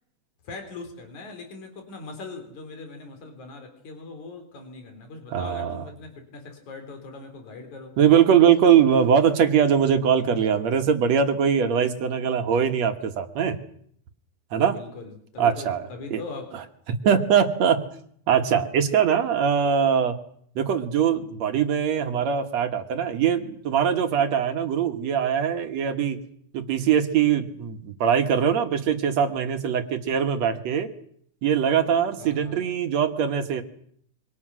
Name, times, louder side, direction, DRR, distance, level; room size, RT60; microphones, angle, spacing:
voice 1, 0.4-7.9 14.7-16.5 32.2-32.6, left 3 dB, 70° left, 5 dB, 5.0 m, -40 dB
voice 2, 5.3-5.9 8.0-13.6 14.5-14.8 15.4-16.2 16.5-16.6 17.0-17.9 18.3-20.2 20.6-26.3 26.5-30.9 31.4-33.6, right 8 dB, 65° right, 7 dB, 2.6 m, -22 dB
27.0 x 24.5 x 6.2 m, 0.66 s
omnidirectional pair, 3.5 m